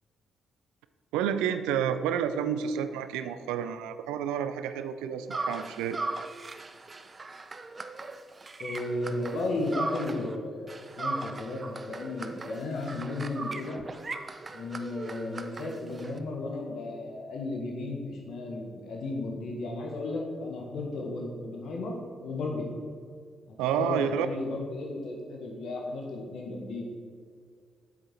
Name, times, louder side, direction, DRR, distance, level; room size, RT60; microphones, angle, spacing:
voice 1, 1.1-6.0 23.6-24.3, right 8 dB, 80° right, 11 dB, 0.4 m, -30 dB
sound 1, 5.3-10.4 10.7-16.2, right 3 dB, 35° right, 0.7 m, -38 dB
voice 2, 8.6-13.8 14.5-22.6 23.5-26.8, left 2 dB, 65° left, 1 dB, 1.6 m, -34 dB
8.2 x 6.9 x 4.5 m, 2.1 s
hypercardioid pair, 40°, 0 cm